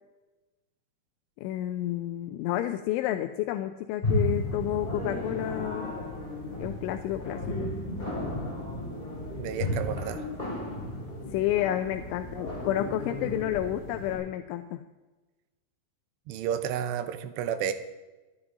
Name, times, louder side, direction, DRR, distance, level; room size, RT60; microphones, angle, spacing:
voice 1, 1.4-6.0 6.6-7.7 11.3-14.8, left 13 dB, 85° left, 8 dB, 3.0 m, -30 dB
sound 1, 4.0-14.1, left 1 dB, 10° left, 5.7 m, -33 dB
voice 2, 9.4-10.2 16.3-17.7, right 9 dB, 75° right, 9 dB, 2.8 m, -31 dB
25.5 x 10.5 x 3.9 m, 1.2 s
omnidirectional pair, 5.5 m